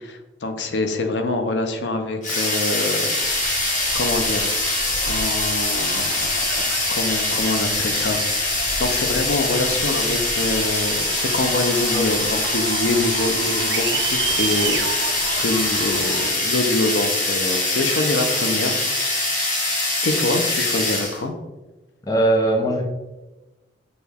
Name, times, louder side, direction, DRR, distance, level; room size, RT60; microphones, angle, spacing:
voice 1, 0.0-3.1 3.9-4.5 5.0-19.3 20.0-21.3, left 2 dB, 85° left, 6 dB, 0.6 m, -25 dB
sound 1, 2.2-21.2, left 2 dB, 50° left, 1.0 m, -23 dB
sound 2, 3.2-16.3, right 5 dB, 85° right, 0.4 m, -32 dB
voice 2, 22.1-22.8, right 1 dB, 20° left, 0 dB, 0.7 m, -20 dB
6.2 x 2.3 x 3.4 m, 1.1 s
head